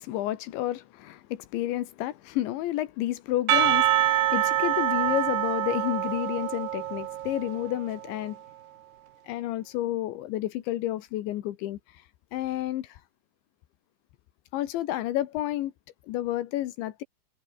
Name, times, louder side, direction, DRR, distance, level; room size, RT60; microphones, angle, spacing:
voice 1, 0.0-8.4 9.3-11.8 12.3-13.0 14.5-15.7 16.1-17.0, left 14 dB, 80° left, 3.6 m, -30 dB
Percussion / Church bell, 3.5-8.0, right 12 dB, 65° right, 3.6 m, -26 dB
omnidirectional pair, 5.3 m